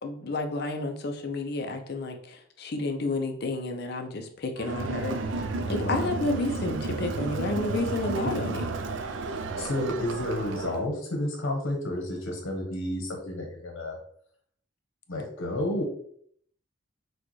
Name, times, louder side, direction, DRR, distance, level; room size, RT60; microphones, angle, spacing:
voice 1, 0.0-8.7, left 2 dB, 55° left, 5 dB, 0.6 m, -31 dB
Crowd, 4.6-10.9, right 3 dB, 70° right, 0.4 m, -32 dB
voice 2, 5.8-6.2 8.2-8.5 9.3-14.0 15.1-15.8, left 1 dB, 85° left, 1 dB, 1.0 m, -31 dB
6.2 x 2.3 x 3.1 m, 0.64 s
head